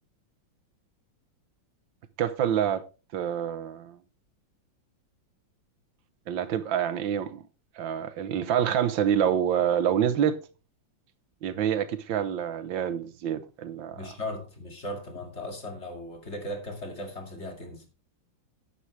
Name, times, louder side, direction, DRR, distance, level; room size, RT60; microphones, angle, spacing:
voice 1, 2.2-2.8 3.1-4.0 6.3-7.4 7.8-10.4 11.4-14.0, right 9 dB, 85° right, 1.7 m, -27 dB
voice 2, 13.9-17.8, left 1 dB, 35° left, 2.5 m, -37 dB
11.0 x 9.6 x 3.3 m
omnidirectional pair, 2.0 m